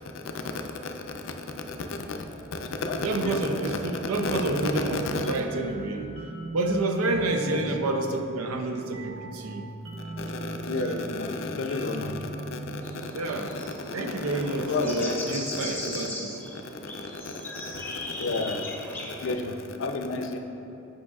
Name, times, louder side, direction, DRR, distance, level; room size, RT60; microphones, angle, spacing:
voice 1, 0.5-2.2 2.5-3.5 4.2-5.3 7.5-7.6 10.2-12.2 12.5-13.1 13.9-14.0 14.3-15.7 16.8-17.3 17.6-20.4, left 3 dB, 65° left, 5 dB, 0.5 m, -32 dB
voice 2, 3.0-6.1 6.5-9.7 13.1-13.6 13.9-16.4, right 2 dB, 90° right, 5 dB, 0.5 m, -29 dB
sound 1, 4.3-13.7, right 1 dB, 60° right, 0.9 m, -39 dB
sound 2, 12.8-19.3, left 2 dB, 10° left, 0.8 m, -38 dB
8.6 x 5.5 x 2.4 m, 2.8 s
head